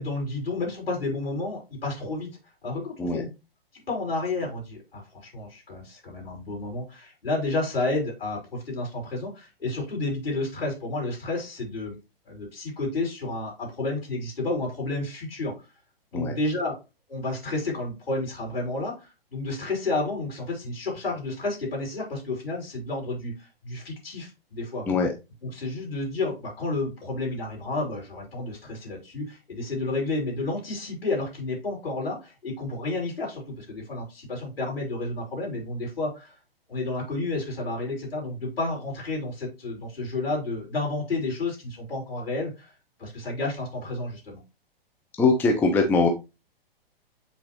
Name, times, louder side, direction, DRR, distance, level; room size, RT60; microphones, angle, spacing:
voice 1, 0.0-2.3 2.6-3.3 3.9-12.0 12.3-15.5 16.1-16.8 17.1-24.8 25.5-36.4 36.7-42.7 43.0-44.4, left 2 dB, 75° left, -1 dB, 3.5 m, -31 dB
voice 2, 45.2-46.1, left 3 dB, 5° left, 2 dB, 0.6 m, -21 dB
7.8 x 4.1 x 3.0 m, 0.27 s
figure-of-eight pair, 115°, 30 cm